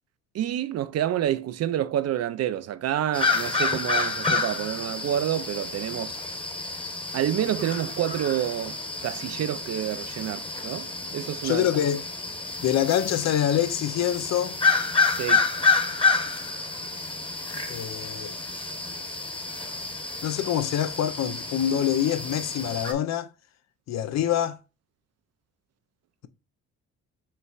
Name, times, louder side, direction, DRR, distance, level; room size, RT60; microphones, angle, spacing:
voice 1, 0.3-6.2 7.1-8.8 9.0-11.7 15.1-15.4, right 11 dB, 55° right, 0.5 m, -28 dB
sound 1, 3.1-22.9, left 4 dB, 15° left, 1.1 m, -29 dB
voice 2, 11.4-12.0 12.6-14.6 17.7-18.3 20.2-23.3 23.9-24.6, left 10 dB, 60° left, 0.6 m, -25 dB
5.5 x 3.2 x 2.4 m
cardioid pair, 90°, 30 cm